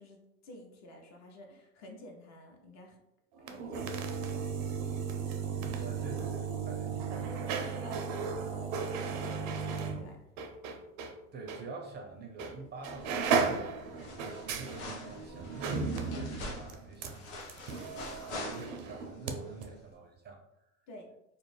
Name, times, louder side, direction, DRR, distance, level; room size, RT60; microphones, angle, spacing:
voice 1, 0.0-3.0 3.4-4.4 7.1-10.2 20.9-21.1, left 1 dB, 45° left, 2 dB, 0.7 m, -50 dB
sound 1, 3.4-11.1 11.5-11.6 12.4-12.6 12.8-19.3 19.6-19.7, right 5 dB, 85° right, 0.5 m, -35 dB
voice 2, 5.7-7.4 11.3-20.4, right 4 dB, 30° right, 1 dB, 0.4 m, -47 dB
sound 2, 13.0-13.5 13.8-19.1 19.4-19.5, left 2 dB, 80° left, 0.8 m, -45 dB
2.4 x 2.0 x 3.1 m, 0.85 s
supercardioid pair, 105°, 38 cm